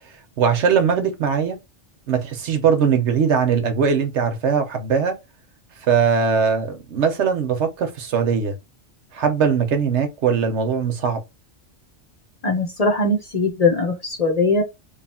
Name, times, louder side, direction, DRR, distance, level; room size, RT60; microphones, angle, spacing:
voice 1, 0.4-1.6 2.1-5.2 5.8-8.6 9.1-11.2, right 6 dB, 75° right, 1.1 m, -20 dB
voice 2, 12.4-14.6, left 3 dB, 40° left, 0.7 m, -20 dB
3.2 x 2.4 x 4.3 m
omnidirectional pair, 1.2 m